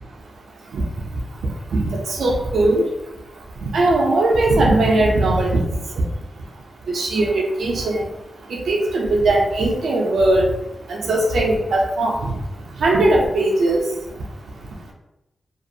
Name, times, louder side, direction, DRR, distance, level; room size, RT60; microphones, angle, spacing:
voice 1, 2.2-2.8 3.7-5.5 6.9-8.0 8.7-10.5 10.9-12.2 12.8-13.8, right 2 dB, 85° right, -1 dB, 0.4 m, -18 dB
2.4 x 2.2 x 2.6 m, 0.93 s
wide cardioid pair, 165°, 0 cm